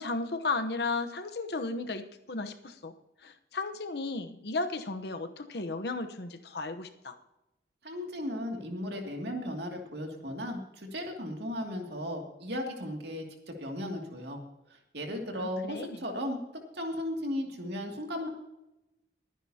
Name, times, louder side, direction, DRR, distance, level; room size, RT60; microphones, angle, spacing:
voice 1, 0.0-2.9 3.2-7.2 15.3-16.0, left 3 dB, 65° left, 8 dB, 0.9 m, -34 dB
voice 2, 7.8-14.4 14.7-16.4 16.7-18.3, left 1 dB, 70° right, 2 dB, 2.4 m, -36 dB
22.0 x 9.7 x 2.8 m, 0.92 s
head